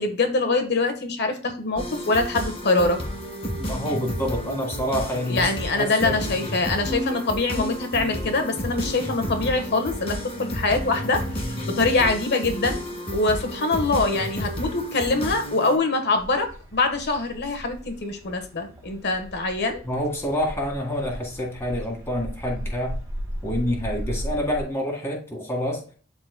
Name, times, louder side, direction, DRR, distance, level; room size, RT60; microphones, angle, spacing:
voice 1, 0.0-3.0 5.3-11.2 11.7-12.8 13.1-19.8, left 3 dB, 55° left, 6 dB, 1.4 m, -24 dB
sound 1, 1.7-15.8, equal, 30° left, 1.7 m, -31 dB
voice 2, 3.6-6.2 19.8-23.0 23.4-25.8, equal, 10° left, -1 dB, 2.0 m, -27 dB
sound 2, 16.1-24.6, equal, 15° right, 2.8 m, -36 dB
12.0 x 4.3 x 2.3 m, 0.39 s
head